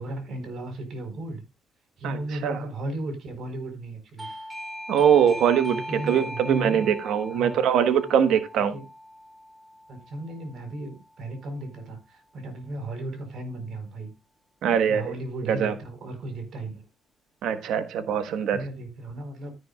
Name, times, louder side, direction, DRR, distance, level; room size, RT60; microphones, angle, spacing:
voice 1, 0.0-1.4 2.0-4.3 5.7-6.9 7.3-7.7 8.7-8.9 9.9-14.1 14.9-16.8 18.5-19.5, right 1 dB, 65° right, 4.5 m, -35 dB
voice 2, 2.0-2.6 4.9-8.7 14.6-15.1 15.5-15.7 17.4-18.6, right 8 dB, 80° right, 1.2 m, -22 dB
Doorbell, 4.2-10.7, equal, 25° right, 2.2 m, -39 dB
13.0 x 10.5 x 2.4 m
cardioid pair, 90°, 0 cm